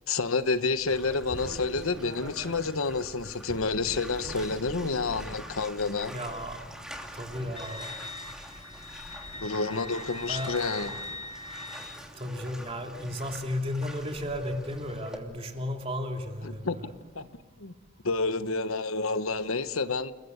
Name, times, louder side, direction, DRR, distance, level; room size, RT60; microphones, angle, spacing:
voice 1, 0.1-6.1 9.4-11.0 16.4-16.8 17.1-17.3 17.6-17.7 18.0-20.1, left 3 dB, 80° left, 11 dB, 1.2 m, -29 dB
Bathtub (filling or washing), 0.9-15.2, equal, 5° right, 2.9 m, -45 dB
sound 1, 1.3-5.4 6.1-6.4 8.2-8.6 10.3-10.4 10.9-11.3 11.8-12.0 13.5-13.8 15.5-15.7 17.2-17.3 18.8-18.9 19.5-19.6, right 1 dB, 90° right, 7.8 m, -44 dB
voice 2, 6.1-6.6 7.1-7.9 10.3-10.5 12.2-16.6, left 1 dB, 30° right, 3 dB, 2.9 m, -34 dB
Wind instrument woodwind instrument, 7.5-12.0, left 2 dB, 30° left, 1.5 m, -41 dB
29.5 x 21.5 x 8.1 m, 1.3 s
head